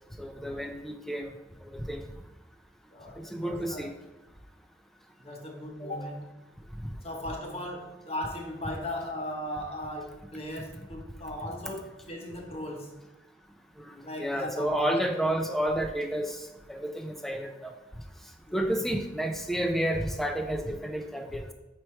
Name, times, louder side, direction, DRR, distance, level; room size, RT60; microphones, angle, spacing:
voice 1, 0.2-1.3 1.7-2.0 3.3-3.9 13.8-16.4 16.7-17.7 18.5-21.5, right 1 dB, ahead, 5 dB, 0.5 m, -30 dB
voice 2, 2.9-3.9 5.2-6.3 7.0-12.9 14.0-15.4 18.5-18.7, left 1 dB, 35° left, 1 dB, 1.0 m, -37 dB
4.8 x 4.6 x 4.4 m, 1.1 s
head